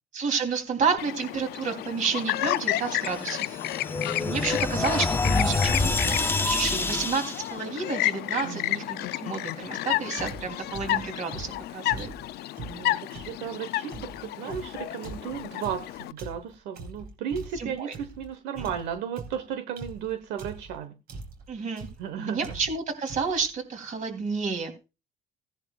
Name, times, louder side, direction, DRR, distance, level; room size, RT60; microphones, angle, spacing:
voice 1, 0.1-3.6 4.2-12.1 17.5-17.9 18.6-18.7 21.5-21.9 22.2-24.8, right 5 dB, 50° right, 4 dB, 3.1 m, -30 dB
Chirp tweet, 1.0-16.1, left 15 dB, 70° left, 0.4 m, -32 dB
sound 1, 3.0-7.5, left 3 dB, 15° left, 0.6 m, -27 dB
voice 2, 8.4-8.8 12.6-20.9 22.0-22.6, right 8 dB, 90° right, 8 dB, 1.1 m, -35 dB
sound 2, 10.2-13.4 13.9-18.3 18.5-20.8 21.1-21.5 21.8-22.1 22.4-22.8 23.1-23.5, right 3 dB, 65° right, 3.7 m, -42 dB
16.5 x 10.5 x 2.4 m, 0.28 s
cardioid pair, 110°, 17 cm